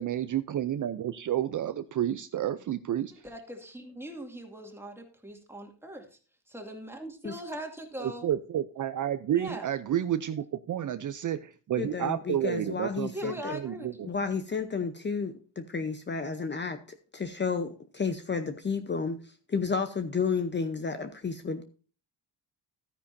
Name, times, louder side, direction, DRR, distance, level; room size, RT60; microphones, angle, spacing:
voice 1, 0.0-3.1 8.0-14.1, right 11 dB, 45° right, 11 dB, 0.6 m, -30 dB
voice 2, 3.1-6.2 6.5-8.3 9.3-9.7 13.1-14.2, equal, 5° right, 3 dB, 2.3 m, -41 dB
voice 3, 11.8-13.5 14.0-16.8 17.1-21.6, left 5 dB, 25° left, 8 dB, 0.8 m, -31 dB
13.0 x 9.8 x 2.7 m, 0.38 s
cardioid pair, 130°, 42 cm